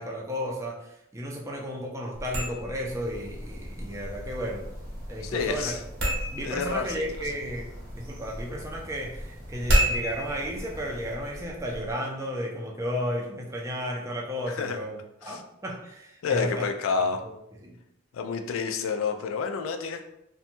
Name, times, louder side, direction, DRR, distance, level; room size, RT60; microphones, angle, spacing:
voice 1, 0.0-4.6 5.1-5.8 6.3-7.7 7.9-16.6 17.6-17.8, equal, 15° right, -1 dB, 0.4 m, -33 dB
sound 1, 2.1-11.9, right 1 dB, 60° right, 0.8 m, -32 dB
sound 2, 2.8-11.2, equal, 90° right, 0.8 m, -47 dB
voice 2, 5.2-5.8 6.4-7.2 14.5-14.8 15.2-15.4 16.2-17.2 18.1-20.0, left 5 dB, 85° left, 6 dB, 0.3 m, -29 dB
2.8 x 2.2 x 2.5 m, 0.82 s
head